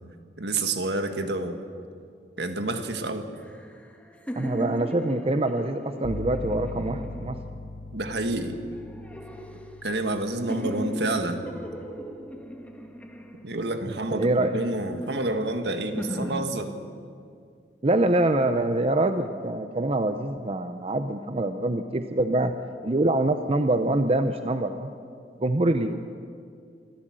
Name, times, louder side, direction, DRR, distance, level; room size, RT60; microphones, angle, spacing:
voice 1, 0.4-1.6 2.4-3.3 7.9-8.6 9.8-11.4 13.4-16.7, right 2 dB, 75° right, 7 dB, 1.7 m, -28 dB
sound 1, 3.4-7.7 8.3-10.2 10.5-13.8 14.4-16.5, equal, 10° left, 1.6 m, -38 dB
voice 2, 4.4-7.4 13.9-14.5 17.8-22.5 22.8-24.9 25.4-26.0, right 2 dB, 35° right, 8 dB, 0.7 m, -25 dB
sound 2, 6.0-13.8, left 2 dB, 85° left, 1.0 m, -41 dB
25.5 x 14.0 x 7.7 m, 2.3 s
head